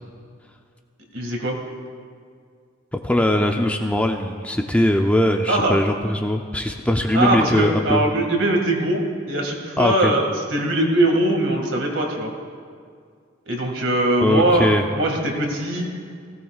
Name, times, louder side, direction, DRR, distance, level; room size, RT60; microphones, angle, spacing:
voice 1, 1.1-1.6 5.5-5.8 7.1-10.2 10.5-12.3 13.5-15.9, right 1 dB, 70° right, 1 dB, 2.1 m, -21 dB
voice 2, 2.9-8.0 9.8-10.1 14.2-14.8, left 1 dB, 5° left, 4 dB, 0.5 m, -20 dB
17.5 x 16.0 x 2.4 m, 2.1 s
head